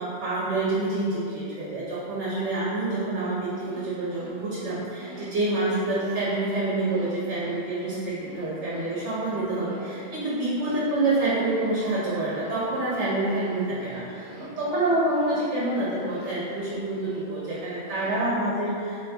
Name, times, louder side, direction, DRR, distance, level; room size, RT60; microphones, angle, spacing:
voice 1, 0.0-19.0, right 2 dB, 80° right, -7 dB, 1.0 m, -27 dB
sound 1, 3.4-18.1, equal, 25° left, 1.4 m, -46 dB
4.2 x 2.8 x 2.7 m, 2.6 s
omnidirectional pair, 1.2 m